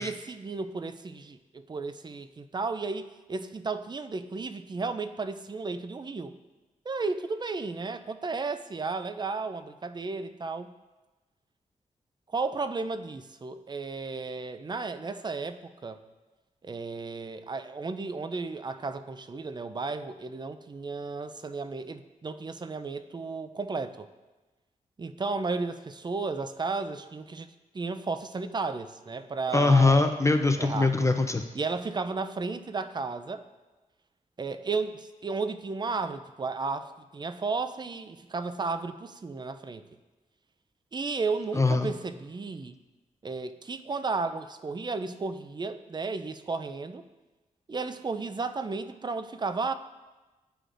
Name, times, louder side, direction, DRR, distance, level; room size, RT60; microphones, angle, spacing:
voice 1, 0.0-6.3 6.9-10.7 12.3-16.0 16.6-24.1 25.0-27.5 27.7-30.0 30.6-30.9 31.5-33.4 34.4-39.8 40.9-42.8 43.2-47.0 47.7-49.7, right 4 dB, 30° right, 10 dB, 0.5 m, -33 dB
voice 2, 29.5-31.4 41.5-41.9, left 3 dB, 20° left, 6 dB, 0.5 m, -22 dB
12.5 x 4.9 x 2.6 m, 1.2 s
cardioid pair, 65°, 14 cm